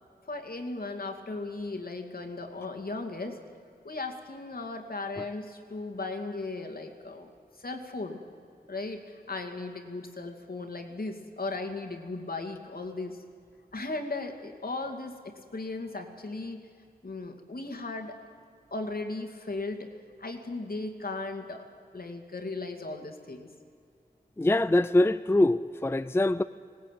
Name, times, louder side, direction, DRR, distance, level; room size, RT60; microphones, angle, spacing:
voice 1, 0.2-3.4 3.8-8.2 8.7-13.2 13.7-16.7 17.0-18.2 18.7-19.9 20.2-21.6 21.9-23.5, left 3 dB, 65° left, 2.4 m, -37 dB
voice 2, 24.4-26.4, left 1 dB, 15° left, 0.4 m, -23 dB
20.0 x 18.0 x 9.1 m
wide cardioid pair, 85°, 17 cm